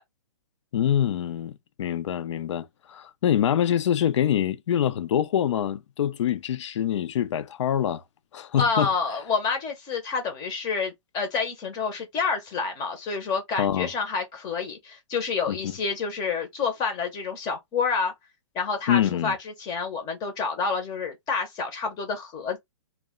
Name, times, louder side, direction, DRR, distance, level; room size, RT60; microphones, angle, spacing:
voice 1, 0.7-8.0 8.3-8.9 13.6-13.9 15.5-15.6 18.9-19.3, left 10 dB, 65° left, 0.5 m, -25 dB
voice 2, 8.6-18.1 18.5-22.6, left 5 dB, 25° left, 0.7 m, -28 dB
2.2 x 2.1 x 3.6 m
hypercardioid pair, 145°, 16 cm